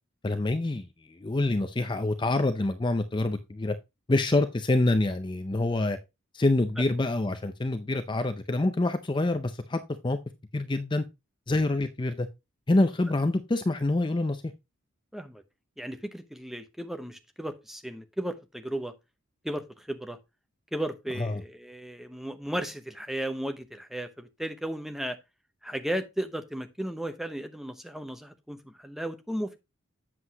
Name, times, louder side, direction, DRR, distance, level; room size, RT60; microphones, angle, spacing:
voice 1, 0.2-3.8 4.1-6.0 6.3-10.2 10.5-11.0 11.5-12.3 12.7-14.5 21.2-21.4, left 2 dB, 20° left, 0.4 m, -26 dB
voice 2, 15.1-15.4 15.8-18.9 19.4-20.2 20.7-25.2 25.6-29.6, right 1 dB, ahead, 0.8 m, -35 dB
7.9 x 7.6 x 2.8 m
head